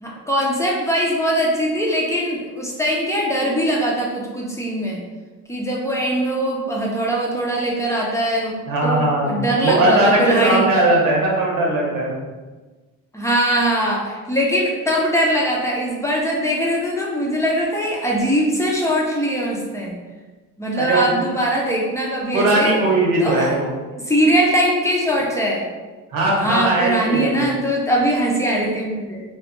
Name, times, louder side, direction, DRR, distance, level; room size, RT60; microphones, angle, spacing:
voice 1, 0.0-5.0 5.5-10.7 13.1-20.0 20.6-22.8 23.2-23.5 23.9-25.7 26.4-29.2, equal, 10° left, -3 dB, 0.6 m, -21 dB
voice 2, 8.7-12.1 20.8-21.1 22.3-23.8 26.1-27.5, right 2 dB, 70° right, -2 dB, 1.0 m, -19 dB
3.2 x 2.4 x 2.9 m, 1.3 s
cardioid pair, 100°, 35 cm